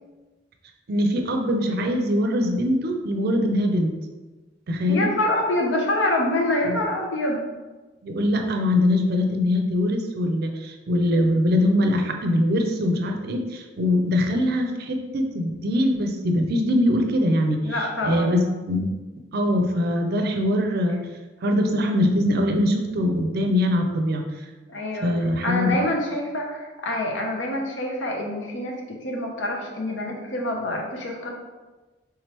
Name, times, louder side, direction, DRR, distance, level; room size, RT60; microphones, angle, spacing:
voice 1, 0.9-3.9 4.7-5.1 6.6-6.8 8.0-19.0 19.3-21.0 21.4-24.2 25.0-25.8, left 1 dB, 55° right, 4 dB, 0.5 m, -22 dB
voice 2, 4.9-7.4 17.6-18.3 24.7-25.1 25.4-31.3, left 1 dB, 80° left, 0 dB, 0.7 m, -26 dB
3.5 x 3.2 x 2.9 m, 1.2 s
head